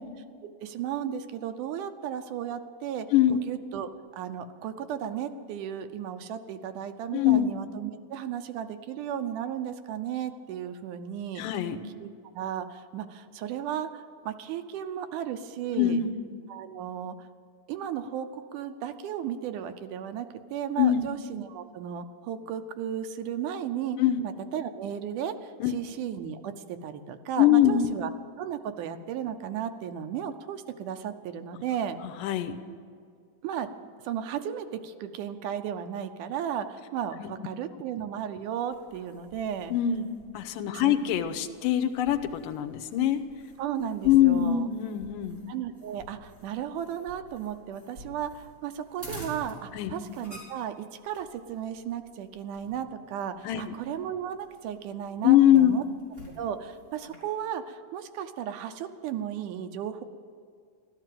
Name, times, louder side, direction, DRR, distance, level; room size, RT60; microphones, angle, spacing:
voice 1, 0.6-11.4 12.0-12.1 12.3-16.0 16.5-17.3 17.7-28.1 28.4-32.0 33.4-33.7 34.0-39.7 40.7-41.0 43.6-44.7 45.5-55.8 56.4-60.0, right 9 dB, 75° right, 8 dB, 2.2 m, -35 dB
voice 2, 7.1-7.5 11.4-11.8 15.8-16.1 20.8-21.1 24.0-24.2 25.6-25.7 27.4-27.9 32.2-32.6 37.2-37.3 39.7-40.1 40.3-43.2 44.0-45.4 49.7-49.9 53.4-53.6 55.2-55.7, left 11 dB, 85° left, 9 dB, 2.4 m, -23 dB
sound 1, 38.7-57.2, equal, 15° right, 3.8 m, -50 dB
14.5 x 12.5 x 7.6 m, 2.2 s
omnidirectional pair, 3.8 m